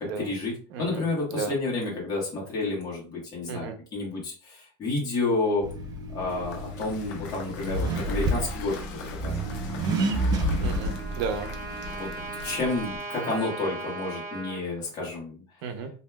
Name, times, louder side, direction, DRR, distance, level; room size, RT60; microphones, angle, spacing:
voice 1, 0.2-0.5 0.8-5.7 6.1-8.8 9.2-9.4 11.9-12.1 12.4-15.4, left 3 dB, 30° left, -4 dB, 1.4 m, -30 dB
voice 2, 0.7-1.0 1.3-1.5 3.5-3.7 10.6-11.5 15.6-15.9, right 6 dB, 75° right, 7 dB, 0.6 m, -33 dB
Accelerating revving vroom, 5.6-13.0, right 1 dB, 30° right, 0.5 m, -30 dB
Cheering / Applause / Crowd, 6.2-13.3, left 5 dB, 80° left, 0.7 m, -44 dB
Trumpet, 10.1-14.6, right 2 dB, 45° right, 1.1 m, -38 dB
3.0 x 2.7 x 2.2 m, 0.38 s
cardioid pair, 150°, 14 cm